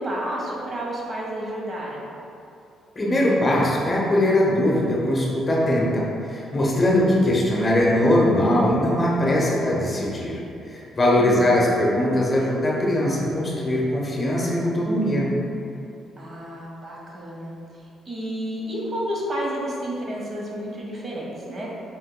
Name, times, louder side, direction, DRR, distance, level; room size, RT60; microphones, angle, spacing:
voice 1, 0.0-2.1 11.1-11.6 16.2-17.5 18.0-21.7, equal, 40° right, -4 dB, 0.9 m, -31 dB
voice 2, 3.0-10.4 10.7-15.3, left 1 dB, 30° left, -4 dB, 0.8 m, -21 dB
4.4 x 3.9 x 2.2 m, 2.7 s
cardioid pair, 90°, 0 cm